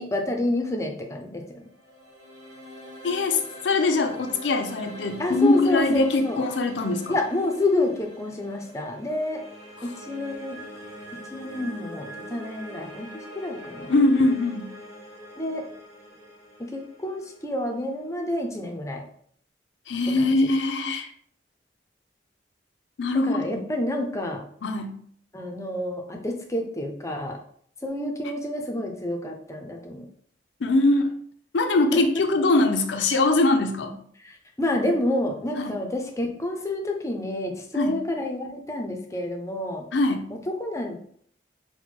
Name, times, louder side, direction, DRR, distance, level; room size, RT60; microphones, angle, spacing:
voice 1, 0.0-1.6 5.2-6.4 7.1-9.4 9.8-10.6 11.3-13.9 15.4-15.7 16.7-19.1 20.2-20.3 23.2-24.4 25.3-27.4 27.8-30.1 31.9-32.0 34.2-39.8 40.5-41.1, left 1 dB, 15° left, 3 dB, 0.5 m, -29 dB
sound 1, 1.5-18.6, equal, 70° right, 1.3 m, -43 dB
voice 2, 3.0-7.2 9.8-9.9 13.9-14.7 19.9-21.1 23.0-23.6 24.6-25.0 30.6-31.1 31.5-34.0 35.6-35.8 37.7-38.0 39.9-40.3, left 2 dB, 80° left, 6 dB, 0.5 m, -22 dB
4.3 x 2.2 x 4.4 m, 0.62 s
head